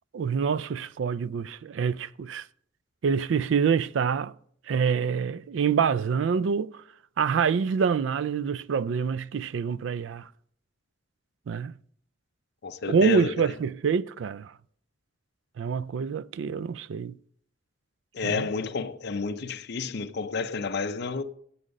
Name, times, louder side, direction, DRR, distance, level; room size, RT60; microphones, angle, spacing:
voice 1, 0.1-2.4 3.0-4.3 4.7-6.7 7.2-10.3 11.5-11.7 12.9-14.5 15.6-17.1 18.2-18.5, right 6 dB, 75° right, 0.4 m, -26 dB
voice 2, 12.6-13.5 18.1-21.2, left 4 dB, 60° left, 0.6 m, -30 dB
9.9 x 7.8 x 5.2 m
head